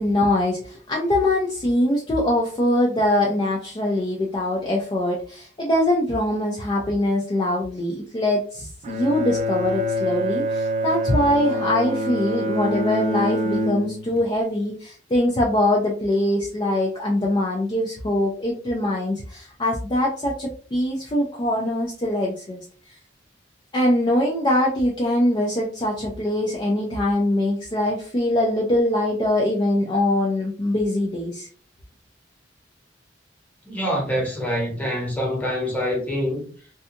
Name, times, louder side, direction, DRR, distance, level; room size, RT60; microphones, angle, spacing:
voice 1, 0.0-22.6 22.9-23.0 23.7-31.5, left 1 dB, 25° left, 0.4 m, -23 dB
Bowed string instrument, 8.8-14.3, equal, 35° right, 0.3 m, -26 dB
voice 2, 33.7-36.5, equal, 10° left, 0.9 m, -25 dB
2.7 x 2.3 x 2.4 m
head